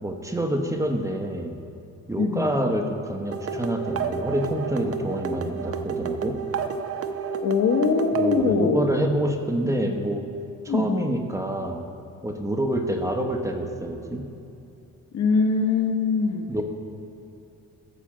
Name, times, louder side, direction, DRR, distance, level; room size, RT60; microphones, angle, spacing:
voice 1, 0.0-1.5 2.1-6.4 8.1-10.3 10.6-11.8 12.2-14.2 16.5-16.6, right 1 dB, 10° right, 3 dB, 0.9 m, -27 dB
voice 2, 2.2-2.5 7.4-8.8 10.7-10.9 15.1-16.5, left 5 dB, 60° left, 4 dB, 1.1 m, -22 dB
sound 1, 3.3-8.5, right 6 dB, 45° right, 0.7 m, -30 dB
13.5 x 4.9 x 7.5 m, 2.8 s
cardioid pair, 125°, 32 cm